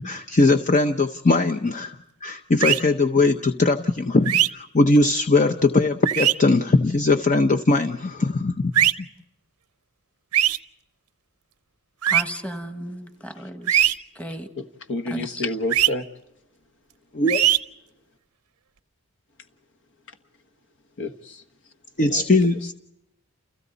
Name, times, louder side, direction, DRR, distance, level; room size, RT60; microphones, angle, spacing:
voice 1, 0.0-2.0 2.2-9.1 17.1-17.4 22.0-22.7, left 2 dB, 35° left, 0.8 m, -20 dB
sound 1, 2.6-2.8 4.3-4.5 6.1-6.3 8.7-8.9 10.3-10.6 12.0-12.2 13.7-13.9 15.7-15.9 17.3-17.6, right 12 dB, 90° right, 0.7 m, -19 dB
voice 2, 12.1-13.9 14.2-14.5 15.1-15.3, equal, 5° left, 1.5 m, -33 dB
voice 3, 14.6-16.0 21.0-21.4 22.0-22.4, left 2 dB, 60° left, 1.4 m, -30 dB
29.5 x 29.0 x 4.1 m
head